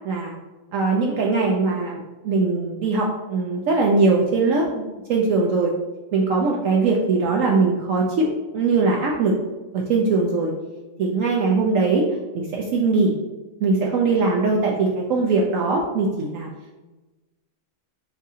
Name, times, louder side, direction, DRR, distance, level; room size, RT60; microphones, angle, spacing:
voice 1, 0.0-0.4 0.7-4.8 5.1-5.7 6.1-9.3 9.7-10.5 11.0-12.0 12.3-13.1 13.6-16.5, right 3 dB, 70° right, -1 dB, 0.7 m, -21 dB
4.0 x 3.6 x 2.7 m, 1.1 s
omnidirectional pair, 1.8 m